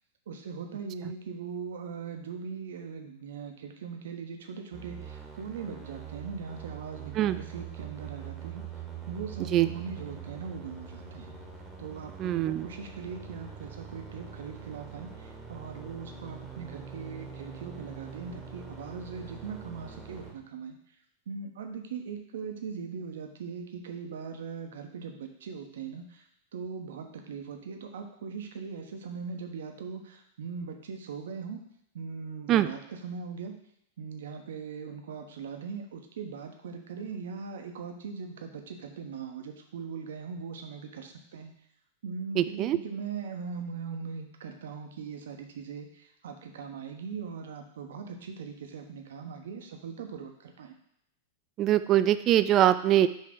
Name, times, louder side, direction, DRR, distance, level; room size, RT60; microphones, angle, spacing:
voice 1, 0.3-11.3 11.8-20.8 21.3-31.6 31.9-33.5 34.0-41.5 42.0-50.8, right 5 dB, 65° right, 4 dB, 0.9 m, -40 dB
sound 1, 4.7-20.3, right 7 dB, 20° right, 1.3 m, -43 dB
voice 2, 12.2-12.7 32.5-32.7 42.4-42.8 51.6-53.1, right 12 dB, 35° right, 13 dB, 0.3 m, -23 dB
5.4 x 3.3 x 5.2 m, 0.74 s
figure-of-eight pair, 95°, 0 cm